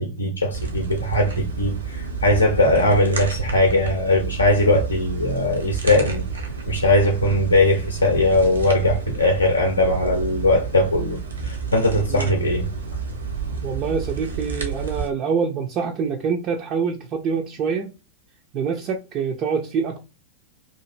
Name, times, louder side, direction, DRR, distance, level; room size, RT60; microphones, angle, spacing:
voice 1, 0.0-6.3 6.7-11.2 11.4-12.7, left 1 dB, 80° left, 0.5 m, -20 dB
sound 1, 0.5-15.1, right 5 dB, 75° right, 0.8 m, -30 dB
voice 2, 13.6-17.9 18.5-20.0, right 6 dB, 35° right, 0.4 m, -25 dB
2.8 x 2.5 x 2.4 m
figure-of-eight pair, 90°, 0 cm